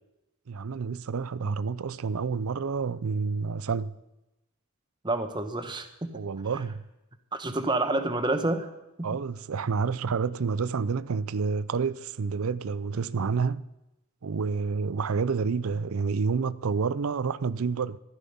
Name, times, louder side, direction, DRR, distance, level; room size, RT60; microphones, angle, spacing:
voice 1, 0.5-4.0 6.1-6.9 9.0-13.7 14.2-18.0, right 5 dB, 90° right, 0.5 m, -29 dB
voice 2, 5.0-6.2 7.3-8.7, right 2 dB, 20° right, 1.0 m, -28 dB
15.0 x 12.0 x 5.4 m
head